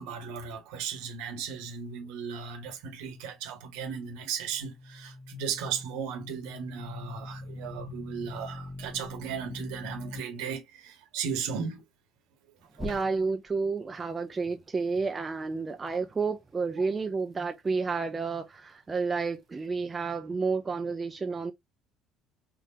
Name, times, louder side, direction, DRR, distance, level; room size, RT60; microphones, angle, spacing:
voice 1, 0.0-11.8 12.8-13.0, right 7 dB, 60° right, 1.2 m, -36 dB
sound 1, 4.4-10.2 12.7-13.5, left 2 dB, 5° left, 0.9 m, -42 dB
voice 2, 12.8-21.5, right 4 dB, 25° right, 0.6 m, -30 dB
4.7 x 2.6 x 2.6 m
figure-of-eight pair, 55°, 0 cm